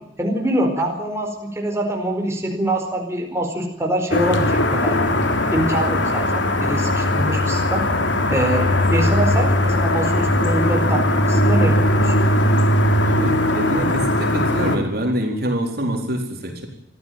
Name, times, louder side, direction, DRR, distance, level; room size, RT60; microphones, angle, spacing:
voice 1, 0.2-5.1 5.5-7.8 8.3-12.2, right 1 dB, 15° right, 1 dB, 4.5 m, -24 dB
sound 1, 4.1-14.8, left 1 dB, 70° left, 3.3 m, -19 dB
voice 2, 13.0-16.7, equal, 55° right, 3 dB, 4.3 m, -25 dB
24.5 x 15.0 x 9.2 m, 0.82 s
head